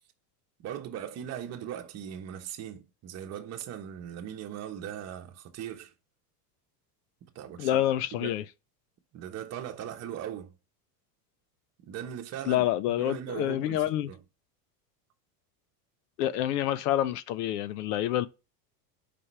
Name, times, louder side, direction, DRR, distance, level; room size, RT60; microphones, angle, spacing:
voice 1, 0.6-5.9 7.3-7.8 8.1-8.4 9.1-10.5 11.8-14.2, right 10 dB, 35° right, 1.1 m, -39 dB
voice 2, 7.6-8.4 12.5-14.1 16.2-18.3, left 12 dB, 75° left, 0.7 m, -27 dB
5.6 x 5.2 x 3.2 m
supercardioid pair, 140°, 47 cm